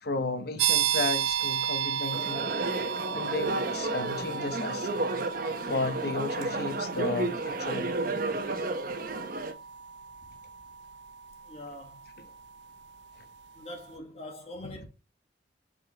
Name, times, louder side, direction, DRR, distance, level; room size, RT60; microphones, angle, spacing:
voice 1, 0.0-2.6 3.1-4.9 5.7-7.9 12.2-12.3, left 3 dB, 60° left, 0.9 m, -34 dB
sound 1, 0.6-13.1, right 9 dB, 80° right, 0.5 m, -34 dB
sound 2, 2.1-9.5, right 2 dB, 55° right, 1.0 m, -32 dB
voice 2, 11.5-12.0 13.6-14.9, left 1 dB, 35° left, 1.5 m, -42 dB
7.5 x 5.5 x 3.0 m
head